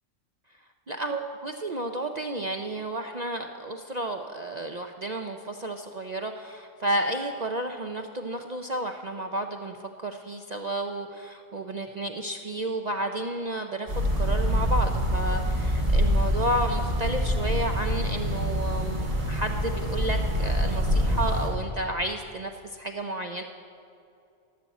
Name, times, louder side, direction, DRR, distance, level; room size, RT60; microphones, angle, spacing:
voice 1, 0.9-9.8 10.0-23.4, right 1 dB, 45° right, 4 dB, 0.6 m, -32 dB
sound 1, 13.9-21.5, equal, 65° right, 4.5 m, -25 dB
12.0 x 12.0 x 8.2 m, 2.6 s
omnidirectional pair, 1.4 m